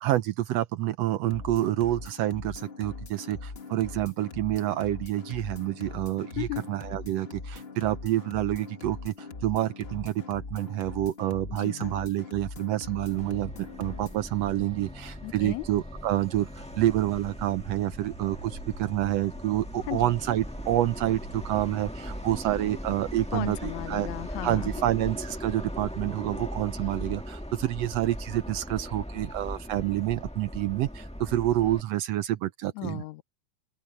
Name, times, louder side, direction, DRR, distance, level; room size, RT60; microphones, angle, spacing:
voice 1, 0.0-13.5 13.8-24.1 24.4-33.0, right 14 dB, 75° right, 1.6 m, -28 dB
sound 1, 1.3-14.2, left 4 dB, 45° left, 0.7 m, -41 dB
voice 2, 11.5-11.9 15.2-15.7 19.9-20.1 23.3-24.8 32.8-33.2, left 20 dB, 80° left, 1.9 m, -35 dB
Subway metro underground, 13.1-31.8, equal, 5° left, 0.7 m, -39 dB
sound 2, 14.0-25.9, right 2 dB, 55° right, 3.4 m, -50 dB
open air
omnidirectional pair, 3.4 m